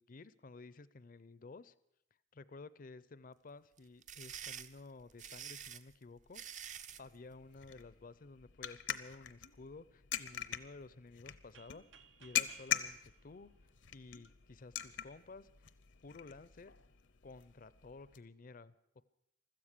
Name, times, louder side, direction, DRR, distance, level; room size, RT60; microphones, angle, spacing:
voice 1, 0.0-1.7 2.3-6.4 6.8-13.5 13.9-15.7 16.0-16.7 17.2-19.0, left 3 dB, 45° left, 17 dB, 0.6 m, -54 dB
sound 1, 3.8-7.1, right 9 dB, 40° right, 0.6 m, -47 dB
sound 2, 6.9-18.2, left 11 dB, 70° left, 0.8 m, -43 dB
sound 3, 11.5-14.3, right 7 dB, 80° right, 0.8 m, -63 dB
16.0 x 13.0 x 6.7 m, 0.80 s
head